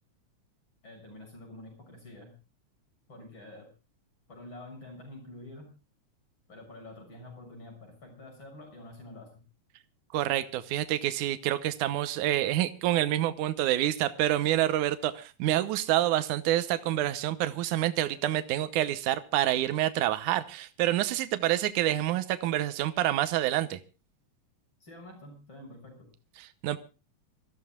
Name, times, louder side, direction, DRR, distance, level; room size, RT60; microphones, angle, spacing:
voice 1, 0.8-2.3 3.1-3.7 4.3-5.7 6.5-9.4 24.8-26.1, left 1 dB, 40° left, 3 dB, 7.3 m, -47 dB
voice 2, 10.1-23.8 26.4-26.8, right 13 dB, 85° right, 12 dB, 2.4 m, -27 dB
26.5 x 15.0 x 2.4 m, 0.33 s
omnidirectional pair, 3.5 m